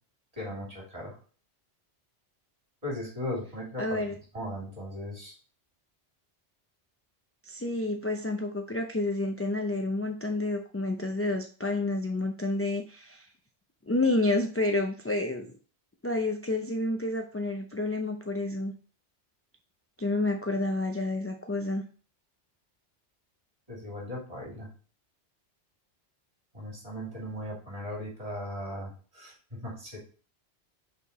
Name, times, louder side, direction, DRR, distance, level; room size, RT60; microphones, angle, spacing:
voice 1, 0.4-1.1 2.8-4.0 4.3-5.4 23.7-24.7 26.5-30.0, left 1 dB, 30° right, -3 dB, 2.9 m, -37 dB
voice 2, 3.8-4.1 7.5-13.3 13.9-15.5 16.0-18.7 20.0-21.8, left 2 dB, 20° left, 3 dB, 0.4 m, -29 dB
5.6 x 4.3 x 4.2 m, 0.38 s
omnidirectional pair, 1.2 m